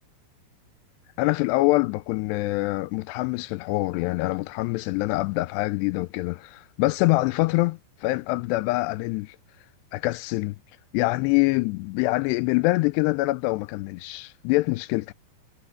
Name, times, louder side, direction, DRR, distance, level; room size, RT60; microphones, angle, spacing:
voice 1, 1.2-9.4 9.9-10.6 10.9-15.1, left 21 dB, 85° left, 2.5 m, -25 dB
omnidirectional pair, 5.1 m